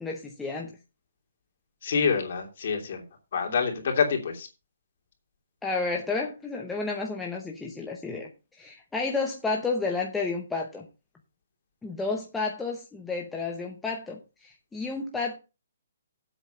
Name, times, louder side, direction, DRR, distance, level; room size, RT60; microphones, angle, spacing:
voice 1, 0.0-0.7 5.6-8.3 8.6-10.9 11.8-15.4, left 3 dB, 5° left, -1 dB, 0.8 m, -31 dB
voice 2, 1.8-3.0 3.3-4.5, left 6 dB, 45° left, 3 dB, 3.0 m, -26 dB
8.0 x 6.4 x 6.9 m, 0.29 s
hypercardioid pair, 175°, 0 cm